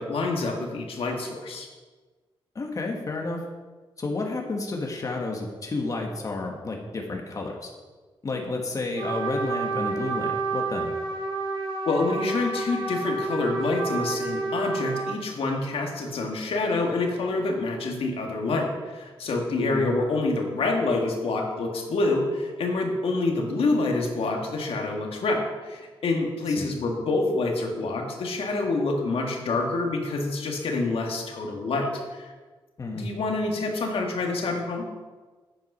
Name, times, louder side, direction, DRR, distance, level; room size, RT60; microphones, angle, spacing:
voice 1, 0.0-1.7 11.8-32.3 32.9-34.9, left 3 dB, 80° left, 1 dB, 1.7 m, -27 dB
voice 2, 2.5-3.4 4.0-7.7 8.2-10.9 19.6-19.8 26.5-26.7 32.8-33.1, left 3 dB, 35° left, 1 dB, 1.4 m, -31 dB
Trumpet, 9.0-15.2, right 3 dB, 60° right, 3.6 m, -29 dB
8.8 x 8.3 x 5.5 m, 1.3 s
wide cardioid pair, 130°, 9 cm